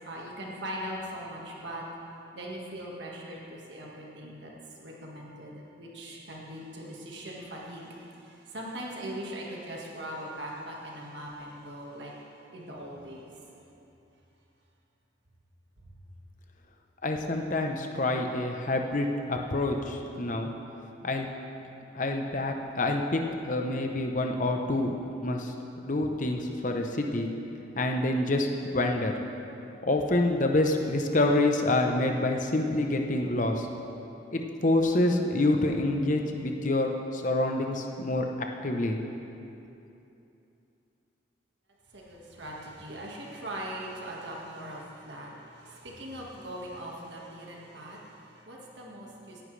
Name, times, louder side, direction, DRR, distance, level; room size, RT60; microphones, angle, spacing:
voice 1, 0.0-1.8 2.3-12.1 12.5-13.3 41.9-49.4, right 1 dB, 65° right, -3 dB, 1.7 m, -40 dB
voice 2, 17.0-20.5 21.0-21.3 21.9-24.9 25.2-27.3 27.8-29.1 29.8-33.7 34.3-38.3 38.6-39.0, left 2 dB, 40° left, 3 dB, 0.8 m, -27 dB
17.5 x 10.0 x 3.3 m, 2.9 s
head